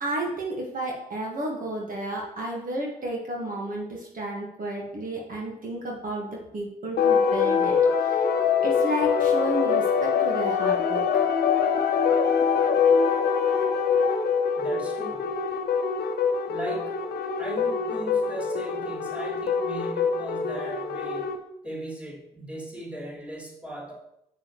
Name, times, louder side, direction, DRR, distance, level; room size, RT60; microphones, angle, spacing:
voice 1, 0.0-6.3 6.5-8.2 8.6-11.1, right 1 dB, 55° right, -2 dB, 1.6 m, -32 dB
sound 1, 7.0-21.4, left 6 dB, 70° left, 0.8 m, -24 dB
voice 2, 14.6-15.4 16.5-17.0 17.3-21.3 21.6-23.9, right 1 dB, 5° right, -4 dB, 2.6 m, -38 dB
7.4 x 6.0 x 3.1 m, 0.81 s
supercardioid pair, 50°, 17 cm